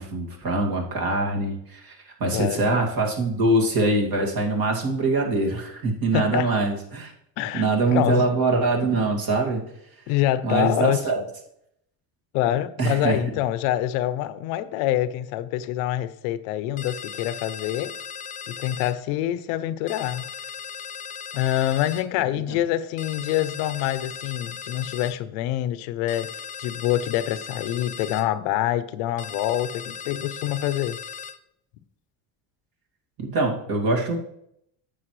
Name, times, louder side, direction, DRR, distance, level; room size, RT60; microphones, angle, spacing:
voice 1, 0.0-7.1 7.5-9.6 10.4-11.2 12.8-13.2 22.5-22.6 33.2-34.2, right 2 dB, 55° right, 2.3 m, -23 dB
voice 2, 2.3-2.8 6.1-6.5 7.4-8.3 10.1-11.0 12.3-18.0 18.5-20.3 21.3-26.3 26.6-31.0, left 13 dB, 85° left, 0.7 m, -26 dB
sound 1, 16.8-19.0 19.9-22.1 23.0-25.2 26.1-28.3 29.2-31.4, left 7 dB, 20° left, 0.3 m, -37 dB
9.9 x 7.4 x 3.1 m
supercardioid pair, 105°, 44 cm